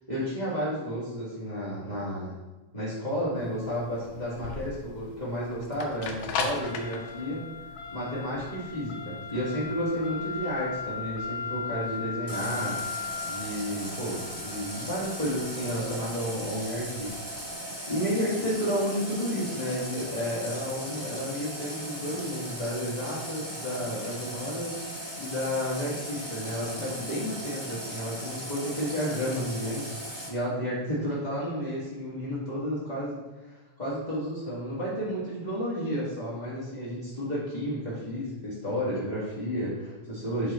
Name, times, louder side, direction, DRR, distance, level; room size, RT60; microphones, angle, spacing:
voice 1, 0.1-2.4 2.7-7.4 7.9-24.9 25.2-29.8 30.3-33.2 33.5-40.5, equal, 20° left, -9 dB, 1.3 m, -32 dB
sound 1, 3.4-17.5, left 5 dB, 75° left, 2.0 m, -37 dB
Water tap faucet, 12.3-30.3, equal, 5° right, 1.8 m, -38 dB
11.0 x 3.9 x 4.3 m, 1.1 s
omnidirectional pair, 3.5 m